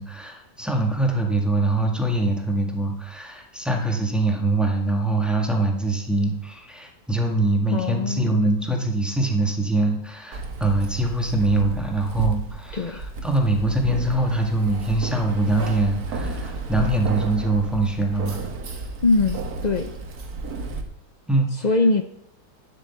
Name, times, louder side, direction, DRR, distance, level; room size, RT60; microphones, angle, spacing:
voice 1, 0.0-18.4 21.3-21.5, right 2 dB, ahead, 1 dB, 1.7 m, -23 dB
voice 2, 7.7-8.5 12.7-13.0 19.0-19.9 21.6-22.0, left 3 dB, 75° left, 7 dB, 0.4 m, -22 dB
Keys jangling, 10.3-20.8, right 3 dB, 60° right, 1.8 m, -32 dB
10.0 x 8.1 x 7.2 m, 0.73 s
omnidirectional pair, 1.8 m